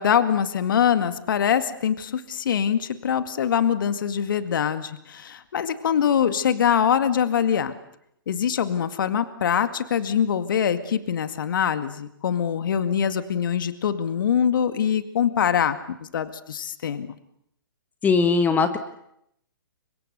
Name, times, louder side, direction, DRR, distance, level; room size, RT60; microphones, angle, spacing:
voice 1, 0.0-7.7 8.3-17.1, left 8 dB, 60° left, 10 dB, 2.1 m, -23 dB
voice 2, 18.0-18.8, left 4 dB, 15° left, 9 dB, 1.7 m, -19 dB
30.0 x 25.5 x 6.9 m, 0.77 s
hypercardioid pair, 130°, 12 cm